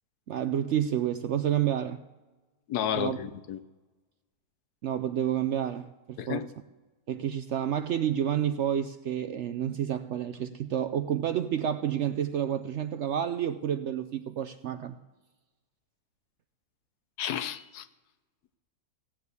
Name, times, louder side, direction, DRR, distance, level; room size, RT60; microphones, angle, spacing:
voice 1, 0.3-2.0 2.9-3.2 4.8-6.5 7.1-15.0, right 10 dB, 65° right, 0.7 m, -29 dB
voice 2, 2.7-3.6 6.2-6.4 17.2-17.9, left 9 dB, 80° left, 1.3 m, -31 dB
16.0 x 7.6 x 8.1 m
omnidirectional pair, 1.7 m